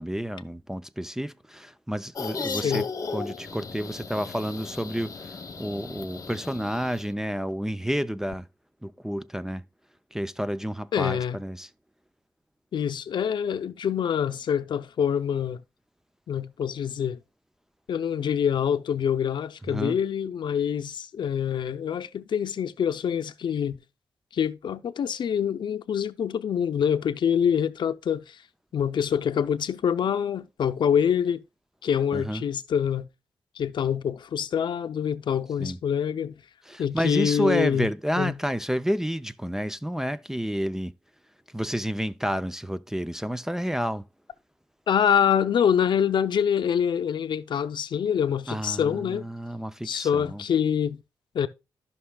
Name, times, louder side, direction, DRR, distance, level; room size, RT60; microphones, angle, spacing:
voice 1, 0.0-2.9 3.1-8.4 8.8-9.6 10.1-11.7 19.7-20.0 32.1-32.4 35.6-35.8 36.7-40.9 41.5-44.1 48.5-50.4, equal, 5° right, 0.4 m, -30 dB
sound 1, 2.2-7.1, left 4 dB, 40° left, 1.1 m, -36 dB
voice 2, 2.4-2.8 10.9-11.4 12.7-15.6 16.3-17.2 17.9-23.8 24.3-28.4 28.7-31.4 31.8-33.1 33.6-36.4 36.8-37.9 38.2-38.4 44.9-49.3 49.8-51.0 51.3-51.5, left 8 dB, 70° left, 0.6 m, -25 dB
15.0 x 5.6 x 2.3 m
cardioid pair, 90°, 8 cm